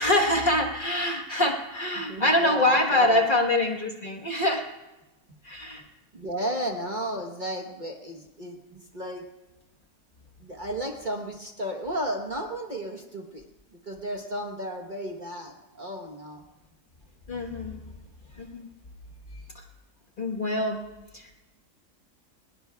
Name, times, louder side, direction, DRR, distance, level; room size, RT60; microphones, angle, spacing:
voice 1, 0.0-4.6 5.4-5.8 17.3-17.8 18.4-18.7 20.2-20.8 21.1-21.4, left 1 dB, 35° left, 2 dB, 1.3 m, -24 dB
voice 2, 2.1-3.3 6.1-9.3 10.4-13.4 13.9-16.4, right 1 dB, 35° right, 2 dB, 1.1 m, -34 dB
21.0 x 20.0 x 2.3 m, 1.0 s
omnidirectional pair, 1.7 m